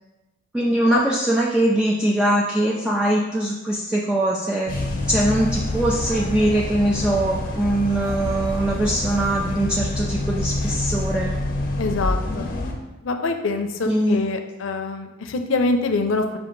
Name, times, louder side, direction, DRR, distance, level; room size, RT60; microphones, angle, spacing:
voice 1, 0.5-4.7 5.1-11.3 13.9-14.2, right 1 dB, 5° right, -4 dB, 0.3 m, -22 dB
sound 1, 4.7-12.7, left 2 dB, 50° left, 0.6 m, -27 dB
voice 2, 11.8-12.5 13.0-16.4, left 3 dB, 85° left, 6 dB, 0.5 m, -24 dB
5.7 x 2.5 x 3.8 m, 1.0 s
head